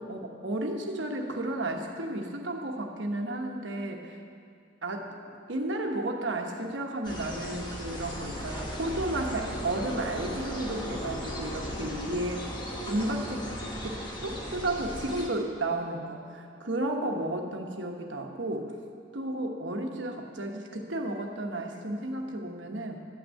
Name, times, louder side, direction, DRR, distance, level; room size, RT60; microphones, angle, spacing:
voice 1, 0.0-4.2 4.8-12.5 12.9-13.5 13.8-18.7 19.1-23.1, right 1 dB, 75° right, 3 dB, 1.2 m, -33 dB
sound 1, 7.0-15.3, equal, 20° left, 1.2 m, -36 dB
11.5 x 6.3 x 8.4 m, 2.4 s
head